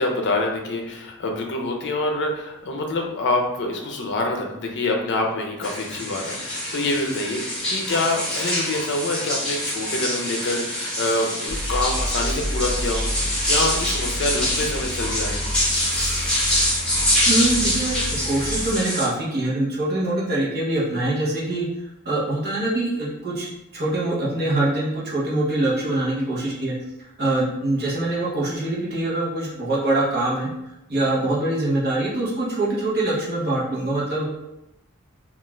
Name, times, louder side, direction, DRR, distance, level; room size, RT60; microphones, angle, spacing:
voice 1, 0.0-15.5, left 2 dB, 55° left, 2 dB, 0.5 m, -26 dB
sound 1, 5.6-19.1, left 1 dB, 5° left, 1.0 m, -25 dB
sound 2, 11.5-18.7, equal, 85° right, 0.7 m, -30 dB
voice 2, 17.3-21.7 22.0-26.7 27.2-30.5 30.9-34.3, right 2 dB, 50° right, -6 dB, 0.9 m, -24 dB
2.4 x 2.4 x 3.1 m, 0.91 s
head